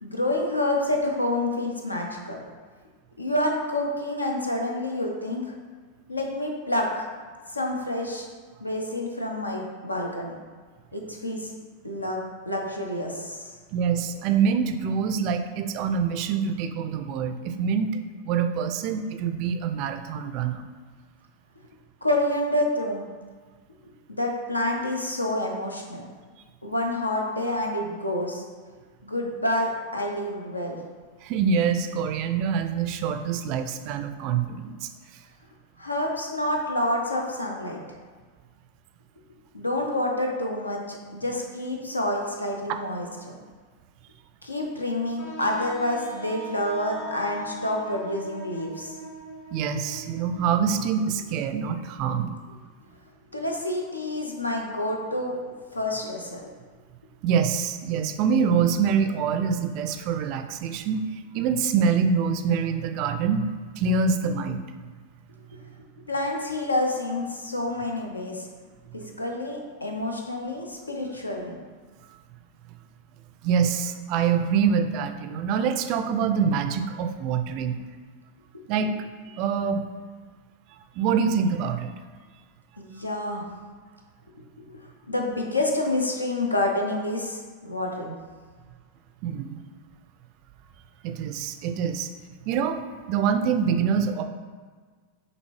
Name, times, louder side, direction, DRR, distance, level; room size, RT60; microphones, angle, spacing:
voice 1, 0.0-2.4 3.2-5.6 6.1-7.1 7.5-8.3 8.6-10.4 10.9-11.5 11.8-13.5 22.0-23.1 24.1-26.0 26.6-28.4 29.0-30.8 35.8-37.8 39.5-43.3 44.4-49.0 53.3-56.4 66.1-68.5 68.9-71.7 78.5-78.6 82.8-83.5 84.6-84.7 85.1-88.2, left 1 dB, 80° left, 1 dB, 0.6 m, -28 dB
voice 2, 13.7-18.0 18.2-20.6 31.2-34.9 49.5-52.4 57.2-64.6 73.4-77.8 78.7-78.9 79.3-79.8 81.0-81.9 89.2-89.6 91.0-92.1 92.5-94.2, right 6 dB, 45° right, 7 dB, 0.3 m, -25 dB
Wind instrument woodwind instrument, 45.2-50.9, right 1 dB, 45° left, 0.9 m, -41 dB
5.9 x 2.6 x 3.1 m, 1.5 s
figure-of-eight pair, 90°, 0 cm